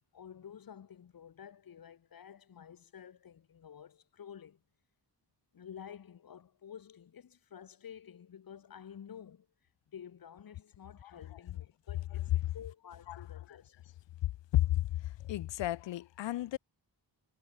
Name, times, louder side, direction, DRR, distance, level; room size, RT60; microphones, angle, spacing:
voice 1, 0.0-4.6 5.5-9.5 9.9-13.8, left 8 dB, 50° left, 1.0 m, -51 dB
voice 2, 15.2-16.6, left 14 dB, 75° left, 0.5 m, -31 dB
cardioid pair, 80°, 44 cm